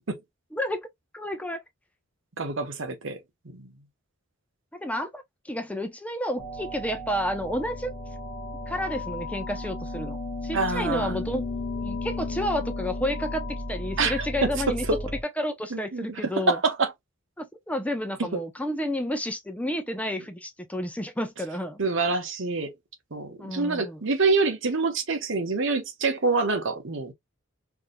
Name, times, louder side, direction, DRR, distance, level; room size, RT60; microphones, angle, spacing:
voice 1, 0.5-0.9 1.1-1.6 4.8-7.9 8.7-10.2 10.4-11.5 11.8-14.9 15.4-16.6 17.4-21.8 23.4-24.0, equal, 5° left, 0.6 m, -30 dB
voice 2, 2.4-3.2 3.4-3.7 10.5-11.2 14.0-14.5 14.9-15.0 15.7-16.9 18.3-18.4 21.8-22.7 23.1-27.1, right 3 dB, 65° right, 1.0 m, -26 dB
sound 1, 6.4-15.2, left 2 dB, 30° left, 0.9 m, -34 dB
4.7 x 2.7 x 2.2 m
head